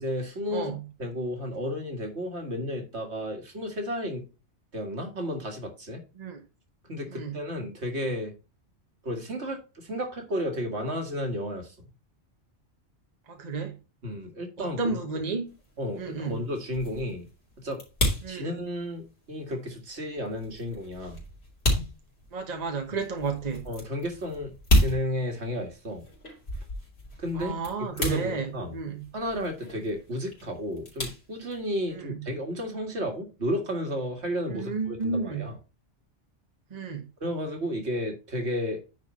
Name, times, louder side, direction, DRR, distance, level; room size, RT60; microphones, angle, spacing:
voice 1, 0.0-4.3 4.7-6.0 6.8-8.3 9.0-11.9 14.0-15.0 15.8-17.3 17.6-17.8 18.3-21.2 22.9-23.0 23.7-26.0 27.2-27.6 27.9-28.8 29.1-35.6 37.2-38.8, equal, 60° right, 2.2 m, -32 dB
voice 2, 0.5-0.8 6.2-6.4 7.1-7.4 13.3-13.7 14.6-15.5 16.0-16.4 18.2-18.5 22.3-23.6 27.4-29.0 31.9-32.2 34.5-35.4 36.7-37.0, right 4 dB, 35° right, 1.2 m, -32 dB
sound 1, 15.5-32.0, left 1 dB, 55° left, 3.3 m, -32 dB
9.6 x 4.7 x 4.2 m
omnidirectional pair, 1.3 m